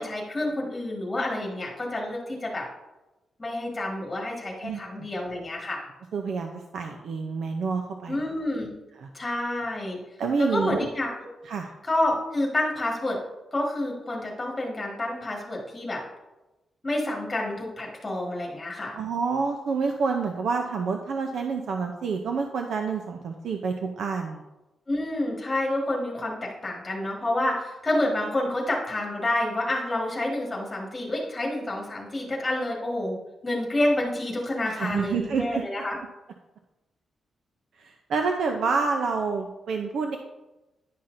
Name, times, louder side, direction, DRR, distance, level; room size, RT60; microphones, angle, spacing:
voice 1, 0.0-2.7 3.4-5.8 8.1-8.7 9.1-10.0 10.4-11.3 11.9-13.2 13.5-16.0 16.8-19.0 24.9-33.2 33.4-36.0, left 1 dB, 15° left, -2 dB, 1.5 m, -28 dB
voice 2, 6.1-8.2 9.0-9.1 10.2-10.9 11.4-11.7 18.9-24.4 34.6-35.6 37.8-40.2, right 5 dB, 70° right, 4 dB, 0.5 m, -28 dB
10.0 x 5.6 x 2.6 m, 1.0 s
wide cardioid pair, 165°, 0 cm